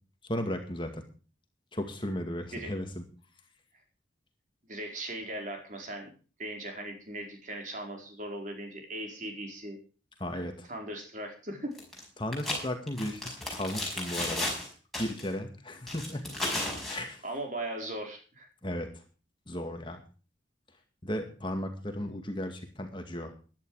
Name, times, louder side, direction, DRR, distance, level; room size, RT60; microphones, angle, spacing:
voice 1, 0.3-1.0 1.7-3.0 10.2-10.5 12.2-14.5 15.0-16.2 16.9-17.2 18.6-19.0 19.5-20.0 21.0-23.3, left 1 dB, 25° left, 5 dB, 2.1 m, -35 dB
voice 2, 4.7-6.1 6.4-9.8 10.3-11.7 17.2-18.5, right 1 dB, 40° right, 3 dB, 4.7 m, -38 dB
sound 1, 11.8-12.0 12.3-14.7 14.9-15.3 15.9-17.0, left 1 dB, ahead, 5.7 m, -34 dB
15.5 x 11.5 x 4.9 m, 0.37 s
head